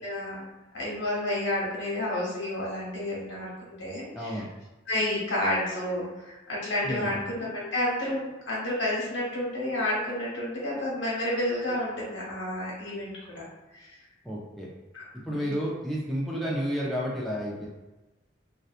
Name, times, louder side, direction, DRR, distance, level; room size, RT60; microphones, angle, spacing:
voice 1, 0.0-0.4 0.7-3.5 3.8-4.4 4.9-13.4 13.7-13.9 14.9-15.5, left 1 dB, 85° left, -5 dB, 1.0 m, -30 dB
voice 2, 4.1-4.5 6.8-7.2 14.2-14.7 15.3-17.7, equal, ahead, -6 dB, 0.4 m, -31 dB
2.7 x 2.2 x 2.4 m, 1.1 s
head